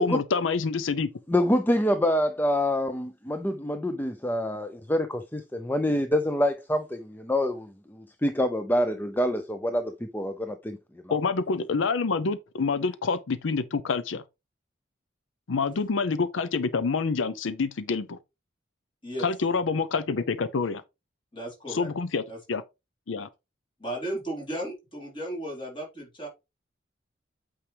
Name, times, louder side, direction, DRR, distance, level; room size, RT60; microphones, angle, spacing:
voice 1, 0.0-1.1 11.1-14.2 15.5-18.2 19.2-20.8 21.7-22.2 22.5-22.6 23.1-23.3, left 4 dB, 85° left, 0.6 m, -27 dB
voice 2, 1.3-10.8 11.1-11.2, left 1 dB, 10° left, 0.5 m, -26 dB
voice 3, 21.3-21.9 22.3-22.4 23.8-26.3, right 1 dB, 25° left, 3.6 m, -35 dB
8.6 x 4.8 x 3.4 m
head